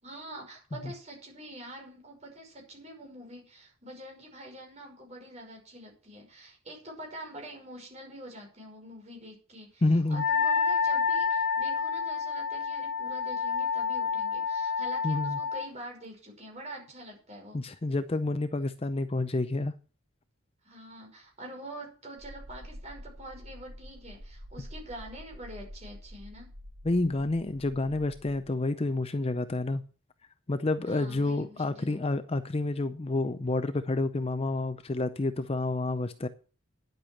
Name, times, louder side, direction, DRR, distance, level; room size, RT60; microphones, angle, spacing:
voice 1, 0.0-17.6 20.6-26.5 30.9-32.2, right 1 dB, 30° right, 5.5 m, -45 dB
voice 2, 9.8-10.2 15.0-15.4 17.5-19.7 26.8-29.8 30.5-36.3, left 2 dB, 25° left, 0.5 m, -29 dB
Wind instrument woodwind instrument, 10.1-15.7, left 5 dB, 75° left, 1.6 m, -29 dB
sound 1, 22.2-28.5, equal, 60° right, 5.3 m, -47 dB
10.5 x 8.0 x 7.2 m
head